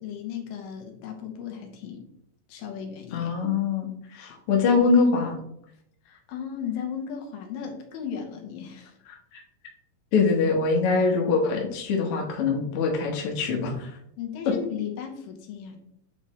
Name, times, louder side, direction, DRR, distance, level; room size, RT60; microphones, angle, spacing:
voice 1, 0.0-2.0 2.5-3.3 6.1-9.0 14.2-15.8, left 8 dB, 85° left, 3 dB, 2.7 m, -35 dB
voice 2, 3.1-5.4 9.3-9.4 10.1-13.9, left 4 dB, 55° left, 0 dB, 1.7 m, -23 dB
8.8 x 4.3 x 3.2 m, 0.72 s
omnidirectional pair, 3.9 m